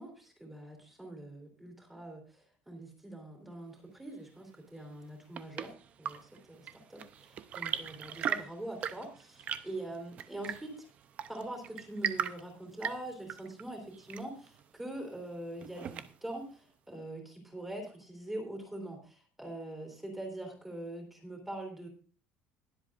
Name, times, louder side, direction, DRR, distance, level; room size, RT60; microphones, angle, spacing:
voice 1, 0.0-5.7 6.0-10.9 11.3-21.9, right 1 dB, 5° right, 1 dB, 3.1 m, -43 dB
Chirp tweet / Engine / Tap, 4.9-16.4, right 8 dB, 35° right, 0.6 m, -40 dB
21.0 x 7.7 x 2.5 m, 0.38 s
cardioid pair, 165°, 4 cm